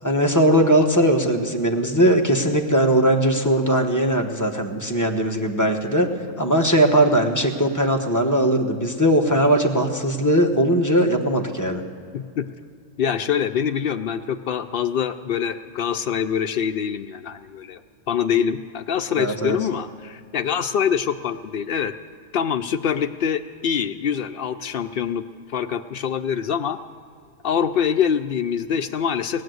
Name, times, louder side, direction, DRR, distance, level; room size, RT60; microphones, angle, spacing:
voice 1, 0.0-6.1 6.4-11.8 19.2-19.6, right 1 dB, 15° left, 2 dB, 0.9 m, -19 dB
voice 2, 12.1-12.5 13.0-17.8 18.1-21.9 22.3-26.8 27.4-29.4, left 8 dB, 80° left, 7 dB, 0.5 m, -24 dB
19.0 x 9.2 x 7.8 m, 2.3 s
omnidirectional pair, 1.5 m